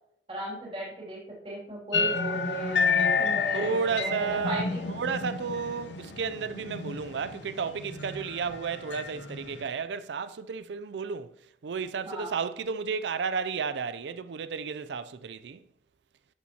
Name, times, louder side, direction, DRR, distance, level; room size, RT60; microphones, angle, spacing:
voice 1, 0.3-4.9 12.0-12.3, right 1 dB, 30° right, 2.7 m, -37 dB
sound 1, 1.9-9.7, left 4 dB, 85° left, 0.7 m, -30 dB
voice 2, 3.5-4.6 4.9-11.3 11.6-15.6, right 5 dB, 80° right, 0.4 m, -32 dB
11.0 x 7.0 x 2.9 m
head